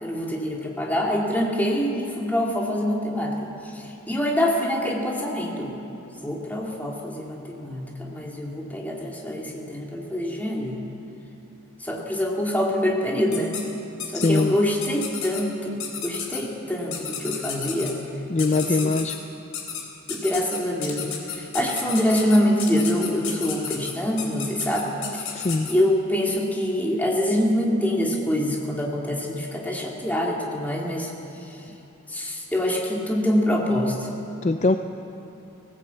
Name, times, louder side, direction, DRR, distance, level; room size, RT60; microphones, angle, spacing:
voice 1, 0.0-5.7 6.2-10.8 11.8-13.6 14.1-17.9 18.6-19.1 20.1-25.4 25.7-31.1 31.5-31.6 32.1-34.1, equal, 10° left, -2 dB, 2.6 m, -25 dB
sound 1, 13.3-13.6 14.0-14.4 14.8-15.4 15.8-16.4 16.9-17.9 18.4-19.2 19.5-19.8 20.1-25.7, left 7 dB, 80° left, 3.8 m, -32 dB
voice 2, 14.1-14.5 18.3-19.2 25.3-25.7 34.4-34.8, left 3 dB, 30° left, 8 dB, 0.5 m, -22 dB
19.5 x 17.5 x 8.3 m, 2.9 s
head